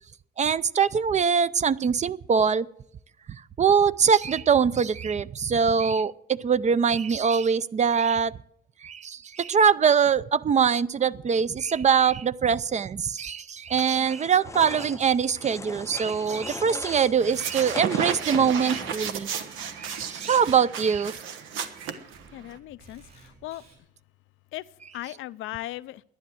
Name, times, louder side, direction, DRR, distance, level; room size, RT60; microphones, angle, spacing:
voice 1, 0.4-2.7 3.3-8.3 8.8-19.3 19.8-21.1 21.8-22.0, right 6 dB, 35° right, 17 dB, 0.5 m, -23 dB
sound 1, 13.7-19.1, left 3 dB, 15° left, 0.5 m, -40 dB
sound 2, 17.2-22.6, right 7 dB, 90° right, 1.1 m, -33 dB
sound 3, 17.4-23.8, right 3 dB, 55° right, 7.1 m, -58 dB
voice 2, 22.3-23.6 24.5-24.6 24.9-26.0, left 16 dB, 85° left, 16 dB, 0.5 m, -37 dB
11.5 x 10.5 x 7.7 m, 0.73 s
cardioid pair, 90°, 20 cm